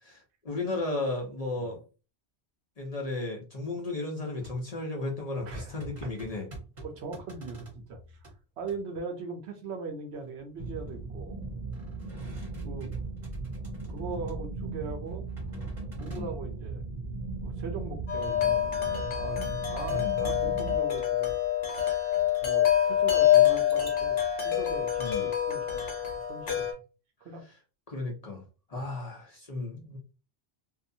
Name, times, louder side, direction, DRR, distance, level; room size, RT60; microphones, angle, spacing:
voice 1, 0.0-1.8 2.8-6.5 16.1-16.3 19.9-20.1 25.0-25.3 27.9-30.0, left 2 dB, 40° left, 0 dB, 0.6 m, -34 dB
sound 1, 4.4-4.7 5.1-8.3 8.6-9.0 10.1-11.1 11.4-14.5 15.1-16.3, right 1 dB, 30° right, 1.0 m, -46 dB
voice 2, 5.5-6.1 6.8-8.2 8.6-11.4 12.6-12.9 13.9-15.3 16.0-16.9 17.4-21.4 22.4-26.7 27.2-27.4 28.7-28.8, right 4 dB, 75° right, 5 dB, 0.9 m, -40 dB
sound 2, 10.6-20.8, right 3 dB, 55° right, 0.6 m, -37 dB
Wind chime, 18.1-26.7, left 11 dB, 70° left, 1.0 m, -26 dB
2.7 x 2.3 x 2.6 m, 0.33 s
omnidirectional pair, 1.1 m